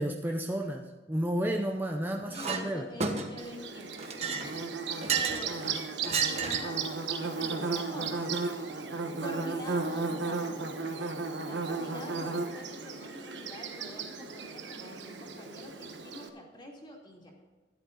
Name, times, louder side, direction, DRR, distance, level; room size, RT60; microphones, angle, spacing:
voice 1, 0.0-2.9, right 1 dB, 10° right, 1 dB, 0.7 m, -32 dB
voice 2, 2.3-4.1 5.1-5.6 6.2-6.9 7.2-8.3 9.2-17.3, left 1 dB, 25° left, -2 dB, 2.7 m, -46 dB
Chink clink, 2.3-2.6 3.0-3.5 4.0-5.5 6.0-6.8, right 5 dB, 35° right, 1.3 m, -32 dB
Bird / Buzz, 3.4-16.3, right 4 dB, 75° right, 1.2 m, -35 dB
12.5 x 11.0 x 3.9 m, 1.3 s
head